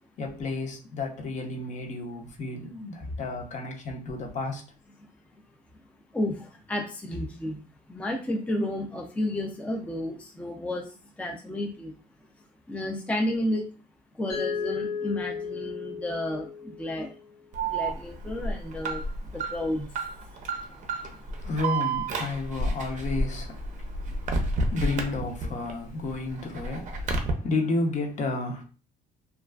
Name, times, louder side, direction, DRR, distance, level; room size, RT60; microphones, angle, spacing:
voice 1, 0.2-4.6 20.5-28.6, left 2 dB, 45° left, 0.7 m, -32 dB
voice 2, 6.7-7.6 7.9-10.9 11.2-11.9 12.7-13.6 14.2-16.5 16.8-17.1 17.7-19.0 19.3-19.9, left 1 dB, 10° left, 0.4 m, -31 dB
Mallet percussion, 14.3-17.2, left 6 dB, 90° left, 1.1 m, -34 dB
Alarm, 17.5-25.7 26.1-27.3, right 2 dB, 50° right, 0.5 m, -30 dB
2.3 x 2.3 x 2.3 m
cardioid pair, 110°, 17 cm